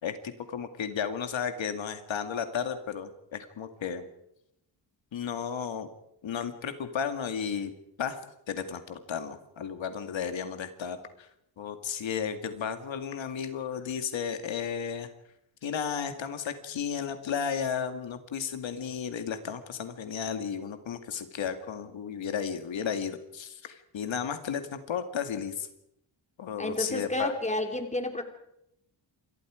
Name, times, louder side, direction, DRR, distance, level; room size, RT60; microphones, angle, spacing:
voice 1, 0.0-4.0 5.1-5.9 6.2-7.7 8.0-8.2 8.5-11.3 11.6-15.1 15.6-25.7 26.4-27.3, left 7 dB, 70° left, 8 dB, 2.2 m, -33 dB
voice 2, 26.6-28.2, left 2 dB, 15° left, 5 dB, 3.3 m, -30 dB
28.0 x 23.5 x 5.0 m, 0.79 s
wide cardioid pair, 145°, 47 cm